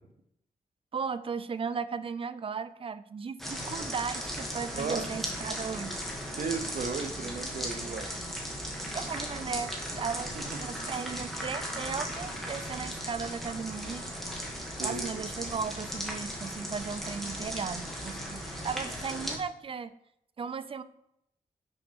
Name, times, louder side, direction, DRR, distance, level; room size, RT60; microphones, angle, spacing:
voice 1, 0.9-6.0 8.9-14.1 14.8-19.9 20.4-20.8, right 6 dB, 40° right, 12 dB, 0.4 m, -36 dB
sound 1, 3.4-19.4, equal, ahead, 1.3 m, -37 dB
voice 2, 4.8-5.1 6.3-8.1 10.3-10.6 14.8-15.1, right 5 dB, 65° right, 7 dB, 0.8 m, -35 dB
5.7 x 5.2 x 5.2 m, 0.77 s
wide cardioid pair, 140°, 15 cm